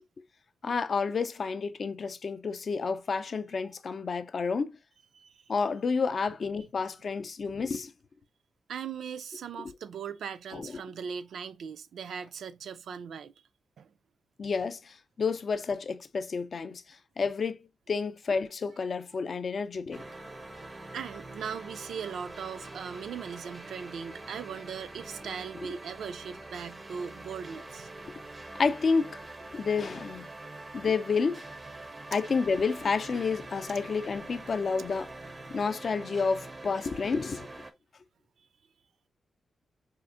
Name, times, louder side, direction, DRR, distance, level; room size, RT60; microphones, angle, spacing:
voice 1, 0.6-4.7 5.5-7.9 9.6-9.7 10.5-10.7 14.4-16.8 17.2-20.0 25.6-25.7 28.0-28.1 28.5-29.2 29.5-30.3 30.7-31.5 32.1-35.1 35.5-37.5, left 5 dB, 50° left, 0.4 m, -30 dB
voice 2, 8.7-13.3 13.8-13.9 20.9-27.9 38.4-38.5, right 7 dB, 85° right, 0.3 m, -39 dB
sound 1, 19.9-37.7, right 2 dB, 25° right, 0.4 m, -45 dB
4.3 x 2.5 x 2.4 m
wide cardioid pair, 110°, 0 cm